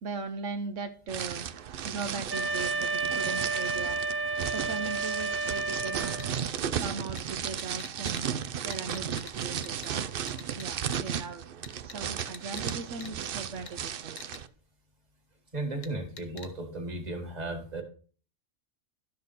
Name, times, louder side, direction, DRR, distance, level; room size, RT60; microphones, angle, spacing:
voice 1, 0.0-1.5 1.8-4.0 4.5-6.1 6.8-8.3 8.6-10.3 10.6-11.5 11.8-14.4, right 4 dB, 80° right, 6 dB, 1.2 m, -39 dB
sound 1, 1.1-14.5, right 8 dB, 55° right, 0.7 m, -35 dB
Wind instrument woodwind instrument, 2.3-6.5, right 3 dB, 15° right, 0.5 m, -31 dB
sound 2, 6.2-6.3 7.2-7.3 7.6-8.2 8.7-9.3 9.6-9.9 10.3-10.7 10.9-11.0 11.6-12.7 13.0-13.1 13.7-13.8 14.2-14.4 15.8-15.9 16.2-16.5, left 6 dB, 85° left, 1.4 m, -44 dB
voice 2, 15.5-17.8, right 2 dB, 35° right, 3 dB, 1.8 m, -35 dB
12.0 x 6.5 x 4.1 m, 0.41 s
omnidirectional pair, 1.3 m